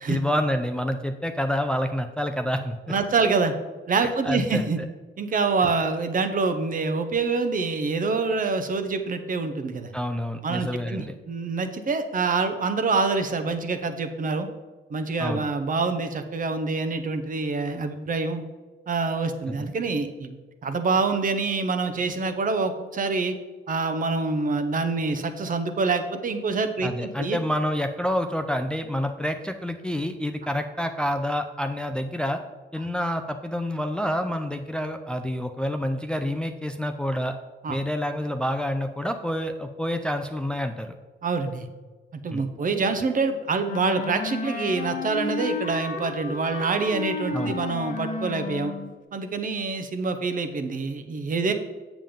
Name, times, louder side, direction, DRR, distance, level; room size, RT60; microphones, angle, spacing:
voice 1, 0.1-2.8 4.0-4.9 9.9-11.1 15.2-15.4 19.5-19.7 26.8-32.4 32.7-37.4 37.7-40.9 42.3-42.5 47.3-47.6, equal, 5° left, 6 dB, 0.4 m, -28 dB
voice 2, 2.9-3.5 3.9-4.8 5.2-9.9 10.4-14.5 14.9-18.4 18.9-20.4 20.6-23.3 23.7-26.9 27.2-27.4 37.6-37.8 41.2-41.7 42.2-48.7 49.1-51.5, right 4 dB, 45° right, 8 dB, 0.9 m, -26 dB
Wind instrument woodwind instrument, 43.6-48.9, left 3 dB, 40° left, 1.0 m, -32 dB
7.3 x 7.0 x 3.7 m, 1.3 s
cardioid pair, 90°, 20 cm